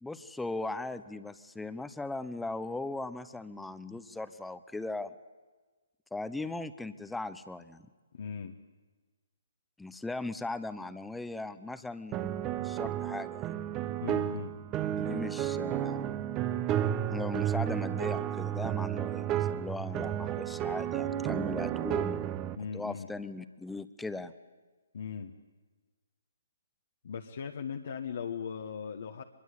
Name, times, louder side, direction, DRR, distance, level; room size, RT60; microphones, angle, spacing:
voice 1, 0.0-5.1 6.1-7.8 9.8-13.5 15.0-16.1 17.1-22.2 22.7-24.3, left 2 dB, 5° left, 12 dB, 0.9 m, -38 dB
voice 2, 8.1-8.5 14.0-14.5 22.5-23.1 24.9-25.3 27.0-29.2, left 6 dB, 60° left, 3 dB, 1.5 m, -38 dB
sound 1, 12.1-22.6, right 11 dB, 20° right, 1.0 m, -32 dB
24.0 x 22.0 x 8.5 m, 1.3 s
hypercardioid pair, 145°, 0 cm